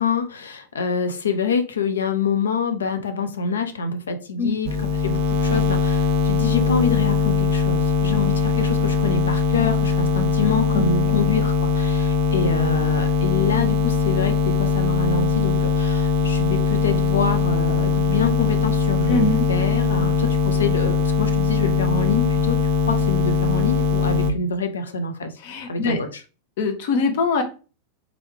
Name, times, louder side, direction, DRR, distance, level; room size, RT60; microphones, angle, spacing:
voice 1, 0.0-4.7 5.0-22.6 22.9-25.3 25.7-26.2, left 5 dB, 70° left, 8 dB, 0.6 m, -26 dB
sound 1, 4.6-24.3, left 5 dB, 45° right, 0.5 m, -21 dB
voice 2, 10.7-11.1 19.1-19.5 19.9-20.1 25.4-26.0 26.6-27.4, left 3 dB, 50° left, 4 dB, 0.9 m, -23 dB
3.7 x 3.1 x 3.2 m, 0.35 s
figure-of-eight pair, 90°, 0 cm